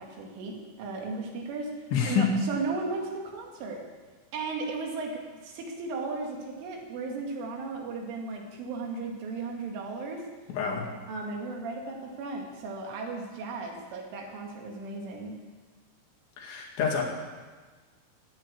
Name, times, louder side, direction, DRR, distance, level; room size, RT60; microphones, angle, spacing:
voice 1, 0.0-3.8 4.3-10.2 11.1-15.3, right 3 dB, 80° right, 1 dB, 4.6 m, -35 dB
voice 2, 1.9-2.3 10.5-10.9 16.4-17.0, left 6 dB, 70° left, 0 dB, 4.4 m, -27 dB
15.5 x 9.0 x 8.4 m, 1.4 s
omnidirectional pair, 5.5 m